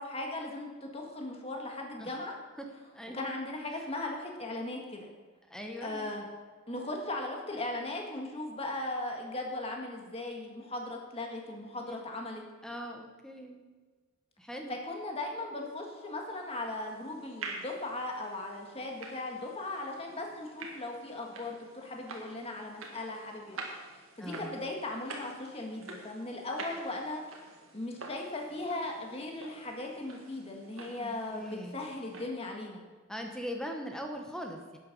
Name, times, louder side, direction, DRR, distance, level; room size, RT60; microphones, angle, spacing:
voice 1, 0.0-2.4 3.1-5.1 5.8-6.3 6.7-12.4 14.7-23.6 24.2-27.2 27.7-32.8, left 2 dB, 30° left, 1 dB, 1.8 m, -38 dB
voice 2, 2.9-3.3 5.5-6.1 11.8-11.9 12.6-13.6 14.4-14.8 24.2-24.6 31.0-31.8 33.1-34.8, equal, 5° left, 2 dB, 1.0 m, -41 dB
sound 1, 16.3-32.3, right 3 dB, 70° right, 1.8 m, -48 dB
11.5 x 9.1 x 5.4 m, 1.4 s
head